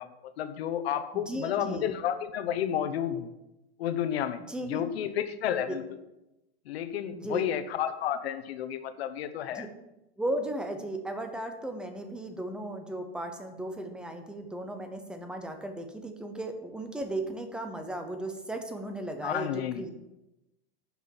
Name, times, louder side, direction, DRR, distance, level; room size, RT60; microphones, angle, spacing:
voice 1, 0.0-3.3 3.8-4.4 4.7-5.8 6.7-9.7 19.2-19.8, left 10 dB, 75° left, 10 dB, 1.1 m, -31 dB
voice 2, 1.1-1.9 4.5-4.8 5.7-5.8 7.1-7.5 9.5-9.7 10.2-19.9, right 1 dB, 5° right, 6 dB, 0.7 m, -36 dB
9.8 x 6.1 x 7.2 m, 0.95 s
supercardioid pair, 165°, 31 cm